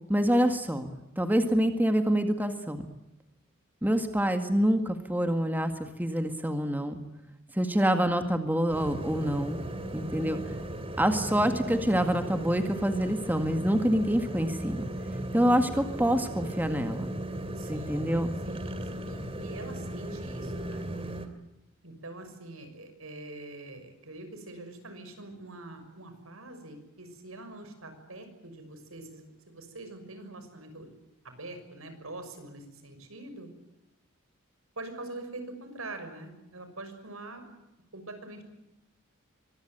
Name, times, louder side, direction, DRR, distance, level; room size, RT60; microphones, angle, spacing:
voice 1, 0.0-2.8 3.8-5.7 6.0-7.0 7.5-9.6 9.9-10.4 11.0-14.8 15.3-17.1 17.7-18.3, equal, 10° right, 7 dB, 1.9 m, -26 dB
sound 1, 8.7-21.3, right 1 dB, 25° right, 2.8 m, -37 dB
voice 2, 17.5-18.1 18.4-20.8 21.8-30.9 31.2-33.5 34.8-37.4 37.9-38.4, right 2 dB, 80° right, 8 dB, 6.3 m, -44 dB
24.5 x 20.5 x 9.0 m, 0.94 s
head